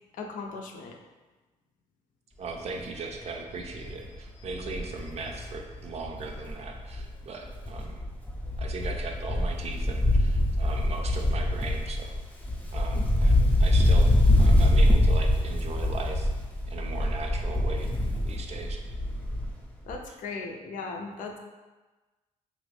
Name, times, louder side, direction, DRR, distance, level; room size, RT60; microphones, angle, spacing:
voice 1, 0.1-1.0 12.9-13.0 19.9-21.4, left 4 dB, 75° left, 3 dB, 0.5 m, -37 dB
voice 2, 2.4-8.0 8.6-12.2 12.7-16.3 16.7-17.9 18.3-18.8 20.1-20.2, right 3 dB, 50° right, 3 dB, 0.5 m, -38 dB
Wind, 2.6-2.9 3.2-3.3 3.6-7.2 7.5-19.6 19.9-20.0, left 1 dB, 10° left, 0.5 m, -24 dB
3.0 x 2.5 x 3.2 m, 1.2 s
cardioid pair, 85°, 14 cm